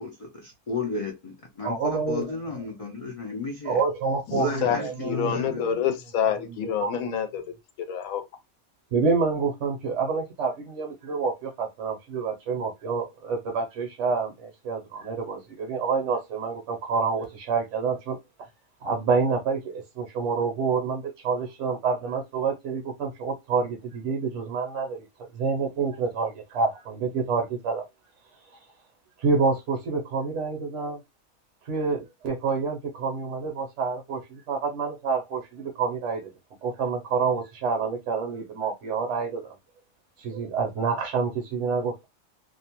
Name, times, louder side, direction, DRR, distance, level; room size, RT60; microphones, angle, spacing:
voice 1, 0.0-3.8 4.3-5.6, left 3 dB, 55° left, 0.4 m, -33 dB
voice 2, 1.6-2.3 3.7-5.3 6.8-7.0 8.9-18.2 18.8-25.0 25.3-27.8 29.2-31.0 31.7-36.2 36.6-39.5 40.2-42.0, right 4 dB, 65° right, 1.0 m, -28 dB
voice 3, 4.3-7.5 7.9-8.2, left 8 dB, 85° left, 1.0 m, -27 dB
2.6 x 2.1 x 2.8 m
omnidirectional pair, 1.4 m